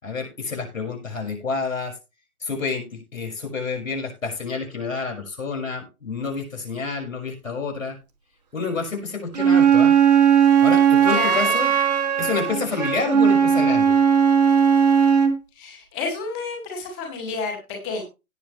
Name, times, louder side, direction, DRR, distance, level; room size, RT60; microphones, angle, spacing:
voice 1, 0.0-1.9 2.4-8.0 8.5-10.0 10.6-11.7 12.2-14.0, left 4 dB, 65° left, 3 dB, 5.8 m, -28 dB
Wind instrument woodwind instrument, 9.3-15.4, right 7 dB, 30° right, 1.5 m, -17 dB
voice 2, 11.1-11.6 15.5-18.0, left 4 dB, ahead, -13 dB, 0.6 m, -30 dB
17.5 x 6.2 x 3.3 m, 0.28 s
figure-of-eight pair, 150°, 43 cm